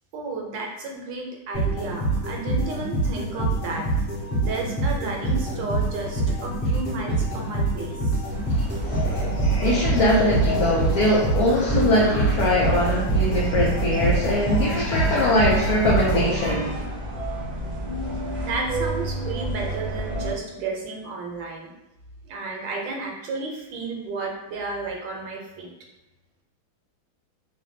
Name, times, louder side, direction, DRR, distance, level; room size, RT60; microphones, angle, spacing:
voice 1, 0.1-3.9 4.4-8.1 18.4-21.7 22.2-25.7, right 3 dB, 75° right, 0 dB, 1.2 m, -32 dB
sound 1, 1.5-16.8, right 2 dB, 40° left, 1.4 m, -25 dB
sound 2, 8.3-20.3, right 1 dB, 50° right, 0.6 m, -31 dB
sound 3, 8.8-15.5, left 4 dB, 60° left, 1.0 m, -36 dB
voice 2, 9.6-16.8, left 1 dB, 85° left, -4 dB, 0.8 m, -22 dB
3.3 x 2.2 x 2.6 m, 0.97 s
omnidirectional pair, 2.2 m